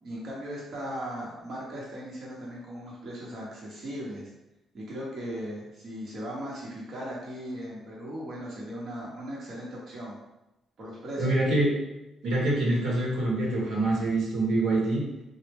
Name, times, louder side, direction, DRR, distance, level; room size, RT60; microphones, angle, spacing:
voice 1, 0.0-4.3 4.7-10.2 10.8-11.4, equal, 55° right, -5 dB, 0.9 m, -38 dB
voice 2, 11.2-11.7 12.2-15.0, right 2 dB, 85° right, -4 dB, 1.0 m, -25 dB
3.1 x 2.1 x 3.3 m, 0.95 s
cardioid pair, 90°, 0 cm